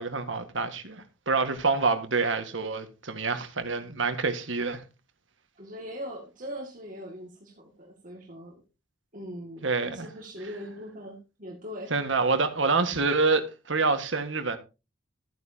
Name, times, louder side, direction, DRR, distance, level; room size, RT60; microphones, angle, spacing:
voice 1, 0.0-4.8 9.6-10.1 11.9-14.6, right 4 dB, 80° right, 1.6 m, -27 dB
voice 2, 5.6-8.6 9.1-11.9, equal, 45° right, 2.1 m, -41 dB
14.0 x 9.5 x 2.8 m
head